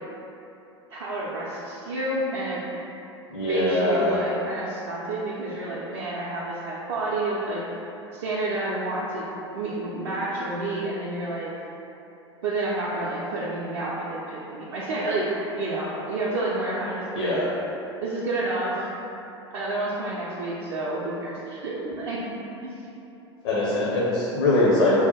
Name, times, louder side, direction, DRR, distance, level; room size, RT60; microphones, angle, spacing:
voice 1, 0.9-2.6 3.4-7.6 8.1-9.2 9.5-11.5 12.4-17.5 18.0-18.9 19.5-22.8, right 2 dB, 65° right, -8 dB, 0.5 m, -29 dB
voice 2, 3.3-4.2 17.1-17.4 23.4-25.0, left 2 dB, 60° left, -7 dB, 0.6 m, -22 dB
2.7 x 2.2 x 3.9 m, 2.9 s
figure-of-eight pair, 80°, 15 cm